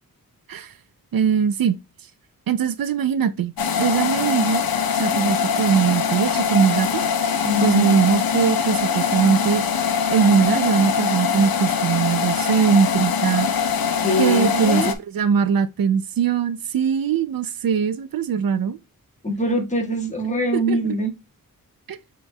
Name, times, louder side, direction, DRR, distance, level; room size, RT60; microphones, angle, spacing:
voice 1, 1.1-1.8 2.5-3.5 3.8-4.6 4.9-7.1 7.6-9.6 10.1-13.5 14.2-18.8 20.5-20.8 21.9-22.0, right 7 dB, 70° right, 0.5 m, -21 dB
Popcorn revisited, 3.6-14.9, left 7 dB, 75° left, 0.8 m, -23 dB
voice 2, 7.4-8.0 14.0-14.9 19.2-21.1, left 1 dB, 20° left, 1.6 m, -23 dB
7.1 x 3.2 x 2.2 m
wide cardioid pair, 75°, 36 cm